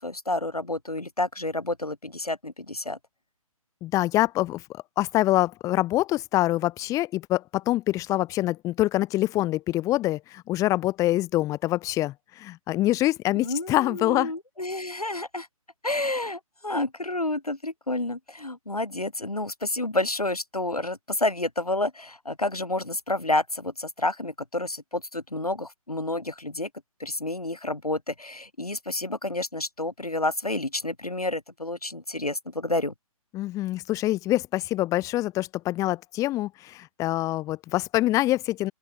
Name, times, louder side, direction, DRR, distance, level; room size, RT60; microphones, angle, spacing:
voice 1, 0.0-3.0 13.3-15.5 15.8-26.7 27.0-32.9, left 2 dB, 90° left, 4.9 m, -29 dB
voice 2, 3.8-4.6 5.0-14.3 33.3-38.7, left 16 dB, 15° left, 3.1 m, -25 dB
open air
figure-of-eight pair, 135°, 19 cm